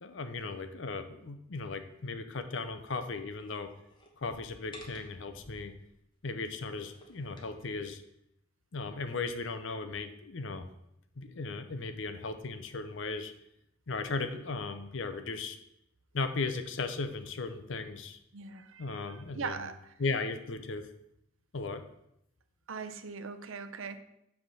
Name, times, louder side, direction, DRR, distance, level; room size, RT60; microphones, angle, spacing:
voice 1, 0.0-3.7 4.2-5.7 6.2-8.0 8.7-10.7 11.2-13.3 13.9-15.6 16.1-18.2 18.8-19.7 20.0-20.9 21.5-21.8, left 3 dB, 70° left, 8 dB, 0.7 m, -36 dB
sound 1, 3.4-5.9 6.5-7.7, left 1 dB, 25° left, 1.1 m, -53 dB
voice 2, 18.3-19.9 22.7-24.0, right 5 dB, 85° right, 9 dB, 0.6 m, -40 dB
7.6 x 3.6 x 6.3 m, 0.79 s
head